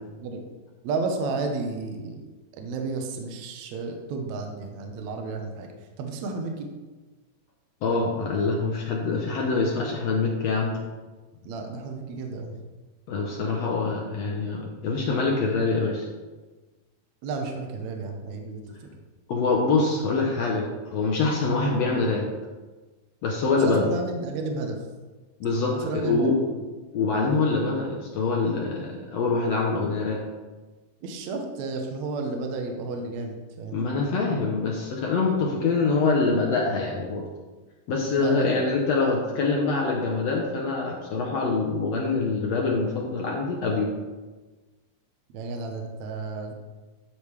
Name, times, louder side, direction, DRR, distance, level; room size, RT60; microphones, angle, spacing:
voice 1, 0.8-2.2 2.5-5.7 6.0-6.7 11.5-12.5 17.2-19.0 23.6-24.8 25.7-26.5 31.0-33.8 38.2-38.6 45.3-46.5, right 3 dB, 70° right, 3 dB, 1.8 m, -32 dB
voice 2, 7.8-10.8 13.1-16.1 19.3-22.3 23.2-23.9 25.4-26.4 26.9-30.2 33.7-37.2 37.9-43.9, left 3 dB, 75° left, -1 dB, 1.6 m, -25 dB
12.0 x 5.1 x 3.2 m, 1.3 s
omnidirectional pair, 4.0 m